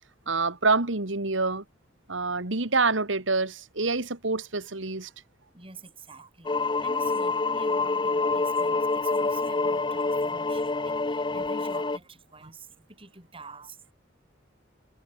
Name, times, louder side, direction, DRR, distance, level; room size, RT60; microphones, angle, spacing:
voice 1, 0.3-1.6 2.1-5.1, right 3 dB, 85° right, 2.5 m, -26 dB
voice 2, 5.5-13.9, right 3 dB, 30° right, 7.5 m, -47 dB
sound 1, 6.4-12.0, left 3 dB, 25° left, 0.7 m, -27 dB
head